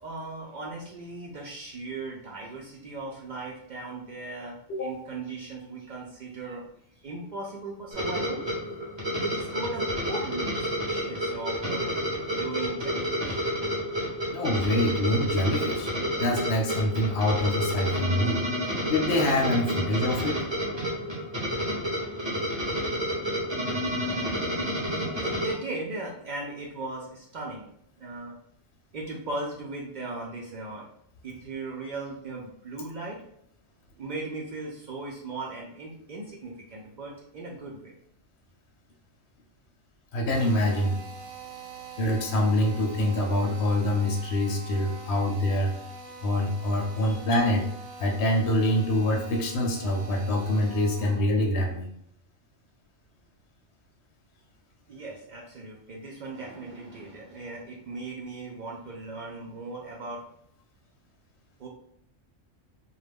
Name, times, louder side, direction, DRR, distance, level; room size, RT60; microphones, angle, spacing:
voice 1, 0.0-6.6 7.0-8.4 9.1-13.4 23.9-24.4 25.2-27.7 28.0-28.3 28.9-30.9 31.2-33.2 34.0-38.0 41.4-41.6 47.0-47.2 54.9-60.2 61.6-61.7, right 3 dB, 70° right, -2 dB, 0.4 m, -38 dB
sound 1, 7.9-25.5, equal, 25° right, 0.7 m, -30 dB
voice 2, 14.3-15.9 16.2-20.4 40.1-41.0 42.0-45.7 46.2-47.6 48.0-51.9, left 1 dB, 65° left, 1 dB, 0.8 m, -25 dB
Drill, 40.3-51.3, right 3 dB, 85° right, 1.0 m, -44 dB
2.3 x 2.0 x 3.3 m, 0.71 s
omnidirectional pair, 1.3 m